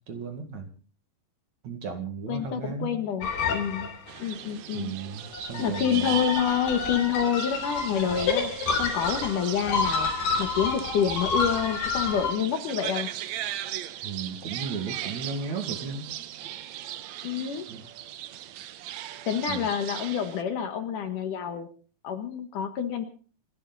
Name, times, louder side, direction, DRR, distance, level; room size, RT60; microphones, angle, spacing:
voice 1, 0.1-0.7 1.6-2.9 4.7-6.2 14.0-16.1 17.7-17.8 19.5-19.7, right 5 dB, 50° right, 6 dB, 3.0 m, -35 dB
voice 2, 2.3-3.9 4.2-4.9 5.6-10.1 10.4-13.1 17.2-17.7 19.3-21.7 22.0-23.0, left 8 dB, 60° left, 8 dB, 2.7 m, -28 dB
sound 1, 3.2-4.2 5.2-12.3, left 5 dB, 85° left, 5.3 m, -29 dB
sound 2, 4.1-20.4, right 12 dB, 80° right, 1.6 m, -38 dB
28.0 x 11.5 x 4.1 m, 0.40 s
omnidirectional pair, 4.5 m